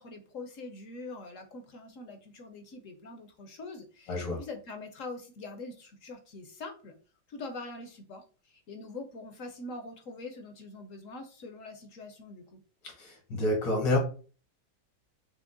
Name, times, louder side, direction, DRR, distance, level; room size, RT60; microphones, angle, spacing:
voice 1, 0.0-6.9 7.3-12.6, left 3 dB, 60° left, 5 dB, 0.9 m, -44 dB
voice 2, 4.1-4.4 13.0-14.0, left 1 dB, 90° left, 1 dB, 2.3 m, -28 dB
5.9 x 2.1 x 3.8 m, 0.38 s
omnidirectional pair, 1.9 m